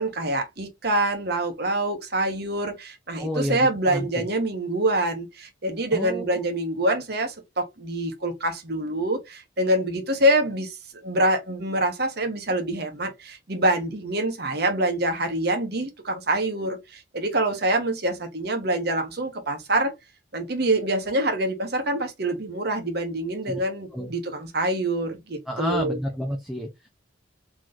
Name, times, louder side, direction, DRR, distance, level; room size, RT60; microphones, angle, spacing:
voice 1, 0.0-10.8 11.0-19.9 20.3-26.0, right 1 dB, 55° right, 1.0 m, -25 dB
voice 2, 3.2-4.2 5.9-6.4 23.5-23.6 23.9-24.1 25.5-26.9, equal, ahead, 0.6 m, -30 dB
4.0 x 3.1 x 2.5 m
head